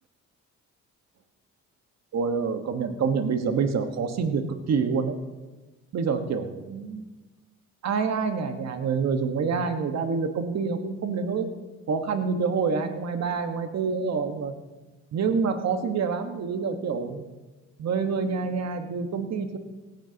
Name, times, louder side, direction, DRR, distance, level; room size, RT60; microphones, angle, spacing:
voice 1, 2.1-5.1 5.9-7.0 7.8-11.5 11.9-14.5 15.1-17.2 17.8-19.6, right 5 dB, 60° right, 6 dB, 1.4 m, -27 dB
17.0 x 14.5 x 2.9 m, 1.2 s
cardioid pair, 90°, 30 cm